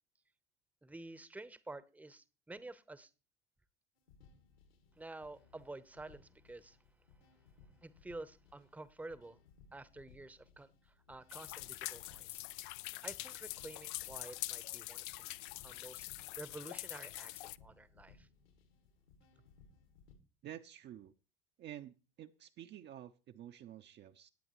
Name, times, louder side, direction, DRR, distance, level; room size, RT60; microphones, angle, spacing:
voice 1, 0.8-3.1 5.0-6.8 7.8-9.4 9.7-12.4 13.0-15.3 15.6-18.3, right 2 dB, 5° right, 16 dB, 0.8 m, -50 dB
sound 1, 4.0-20.1, left 5 dB, 75° left, 2.5 m, -64 dB
sound 2, 11.3-17.6, left 18 dB, 55° left, 0.5 m, -44 dB
voice 2, 20.4-21.1 21.6-24.3, right 11 dB, 35° right, 7 dB, 0.7 m, -50 dB
18.5 x 8.6 x 3.1 m, 0.32 s
figure-of-eight pair, 70°, 30 cm